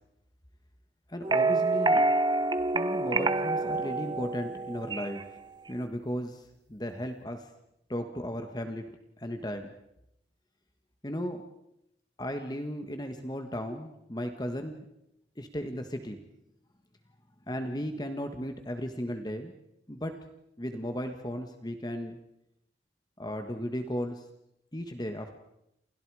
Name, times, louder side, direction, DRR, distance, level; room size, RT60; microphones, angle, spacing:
voice 1, 1.1-2.1 2.7-5.4 5.7-7.5 7.9-9.7 11.0-11.4 12.2-14.8 15.4-16.2 17.5-19.5 19.9-20.2 20.6-22.2 23.2-24.3 24.7-25.4, equal, 20° left, 6 dB, 1.6 m, -35 dB
sound 1, 1.2-5.3, right 2 dB, 25° right, 1.0 m, -27 dB
29.0 x 29.0 x 5.0 m, 0.83 s
head